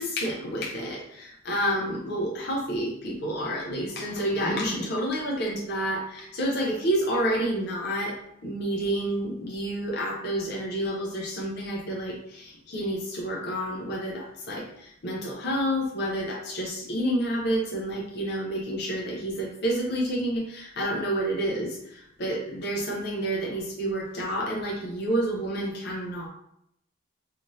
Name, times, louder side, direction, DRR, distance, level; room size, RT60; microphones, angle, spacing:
voice 1, 0.0-8.2 8.4-26.3, right 1 dB, 50° left, -3 dB, 0.5 m, -29 dB
2.6 x 2.4 x 3.0 m, 0.78 s
head